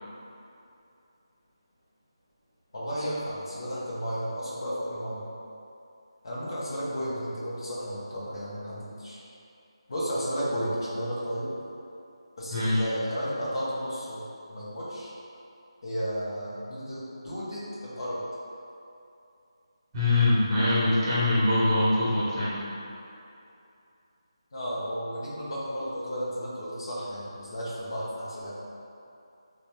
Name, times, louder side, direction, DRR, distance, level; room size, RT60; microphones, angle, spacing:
voice 1, 2.7-5.3 6.2-9.2 9.9-11.5 12.4-15.1 15.8-18.2 24.5-28.5, equal, 50° left, -7 dB, 1.1 m, -33 dB
voice 2, 12.5-12.8 19.9-22.5, left 2 dB, 15° right, -11 dB, 1.3 m, -23 dB
4.0 x 2.6 x 3.3 m, 2.7 s
figure-of-eight pair, 155°, 3 cm